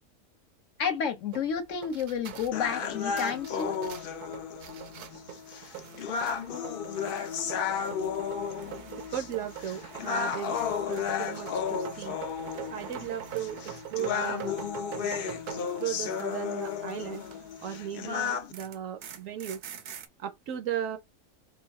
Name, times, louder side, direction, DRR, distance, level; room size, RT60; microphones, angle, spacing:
voice 1, 0.8-3.8, left 7 dB, 65° left, 1.0 m, -31 dB
sound 1, 1.3-17.9 18.2-20.1, right 10 dB, 90° right, 1.2 m, -45 dB
sound 2, 2.5-18.5, left 7 dB, 80° left, 0.4 m, -33 dB
voice 2, 9.1-12.2 12.7-14.5 14.8-15.2 15.8-17.2 17.6-19.6 20.2-21.0, right 10 dB, 70° right, 0.9 m, -36 dB
4.1 x 2.3 x 3.4 m
omnidirectional pair, 1.6 m